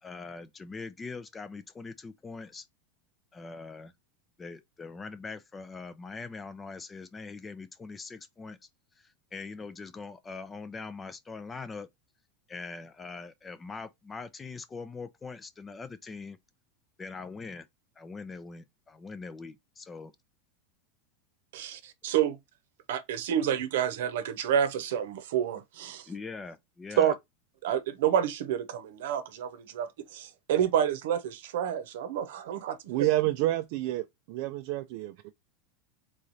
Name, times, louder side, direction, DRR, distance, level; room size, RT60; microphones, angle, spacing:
voice 1, 0.0-2.7 3.3-3.9 4.4-8.6 9.0-11.9 12.5-16.4 17.0-17.7 18.0-20.1 26.1-27.1, left 4 dB, 15° left, 0.5 m, -42 dB
voice 2, 21.5-22.4 22.9-26.1 27.0-27.1 27.6-32.9, right 9 dB, 75° right, 0.9 m, -29 dB
voice 3, 32.9-35.1, right 16 dB, 55° right, 0.4 m, -29 dB
3.8 x 3.2 x 4.0 m
supercardioid pair, 155°, 0 cm